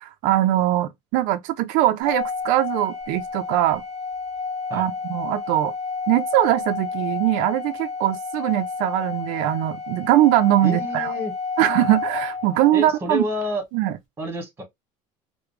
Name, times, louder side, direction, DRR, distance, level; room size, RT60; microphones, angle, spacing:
voice 1, 0.0-3.8 4.7-5.7 6.1-11.1 11.6-13.2 13.7-13.9, right 14 dB, 70° right, 0.4 m, -21 dB
Organ, 2.0-12.9, left 4 dB, 5° left, 1.7 m, -30 dB
voice 2, 10.6-11.3 12.7-13.6 14.2-14.6, equal, 20° right, 1.2 m, -28 dB
4.8 x 2.0 x 3.3 m
cardioid pair, 170°, 13 cm